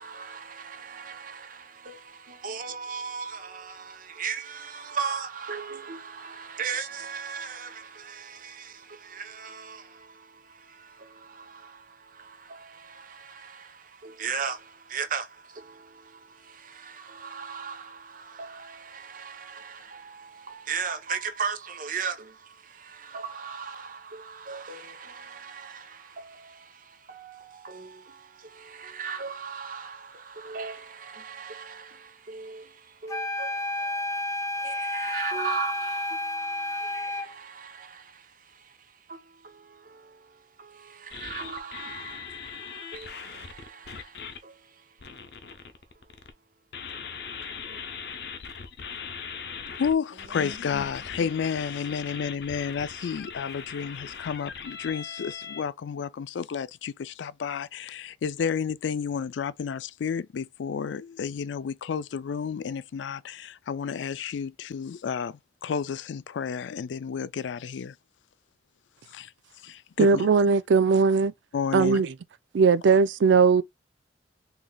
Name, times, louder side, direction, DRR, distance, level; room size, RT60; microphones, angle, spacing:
voice 1, 0.0-45.0 50.3-50.6, right 6 dB, 50° right, 0.8 m, -38 dB
sound 1, 33.1-37.3, left 1 dB, 20° left, 0.4 m, -31 dB
sound 2, 41.1-44.4 45.0-46.3 46.7-55.6, left 6 dB, 65° left, 0.7 m, -40 dB
voice 2, 49.8-67.9 69.1-69.3 69.6-70.3 71.5-72.0, left 6 dB, 85° left, 0.4 m, -31 dB
voice 3, 70.0-71.3 71.7-72.1 72.5-73.6, right 5 dB, 85° right, 0.4 m, -19 dB
3.9 x 3.1 x 2.3 m
head